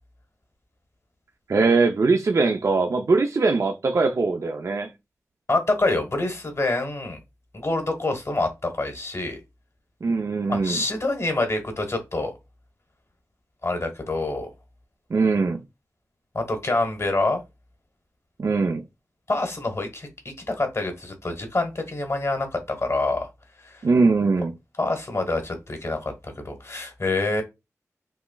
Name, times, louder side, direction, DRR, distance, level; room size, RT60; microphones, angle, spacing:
voice 1, 1.5-4.9 10.0-10.8 15.1-15.6 18.4-18.8 23.8-24.5, right 4 dB, 60° right, 0.4 m, -21 dB
voice 2, 5.5-7.2 7.5-9.4 10.5-12.3 13.6-14.5 16.3-17.4 19.3-23.3 23.6-23.8 24.8-27.4, left 2 dB, 50° left, 1.1 m, -26 dB
5.6 x 2.0 x 2.2 m
cardioid pair, 45°, 6 cm